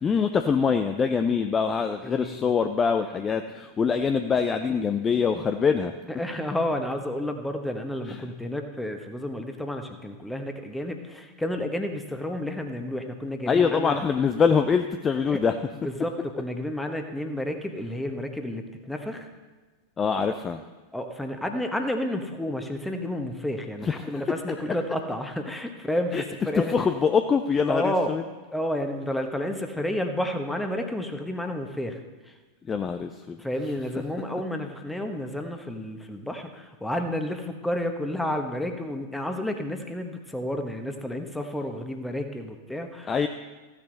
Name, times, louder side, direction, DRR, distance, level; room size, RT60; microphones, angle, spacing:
voice 1, 0.0-5.9 8.1-8.2 13.5-15.6 20.0-20.6 23.8-24.1 26.1-26.2 26.7-28.2 32.7-33.4 43.1-43.3, left 6 dB, 20° left, 8 dB, 0.5 m, -24 dB
voice 2, 1.9-2.5 6.2-14.0 15.3-15.4 15.8-19.3 20.9-26.7 27.7-28.1 28.5-32.0 32.3-32.4 33.4-43.3, left 1 dB, 5° left, 5 dB, 1.2 m, -31 dB
15.0 x 9.7 x 4.1 m, 1.2 s
figure-of-eight pair, 90°, 0 cm